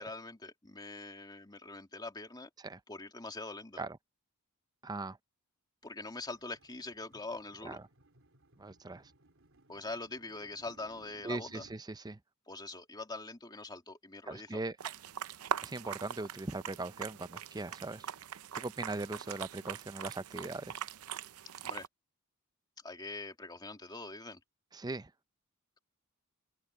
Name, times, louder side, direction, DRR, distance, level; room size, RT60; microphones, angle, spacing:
voice 1, 0.0-2.5 2.9-3.8 5.8-7.8 9.7-11.6 12.5-14.6 21.6-21.9 22.8-24.4, left 2 dB, 20° left, 2.4 m, -43 dB
voice 2, 4.8-5.2 7.6-7.8 8.6-9.0 11.2-12.2 14.3-14.8 15.6-18.1 18.5-20.8 24.7-25.1, right 2 dB, 20° right, 0.6 m, -40 dB
sound 1, 5.8-11.8, right 2 dB, 65° right, 3.7 m, -62 dB
sound 2, 14.8-21.9, right 8 dB, 85° right, 0.6 m, -41 dB
open air
head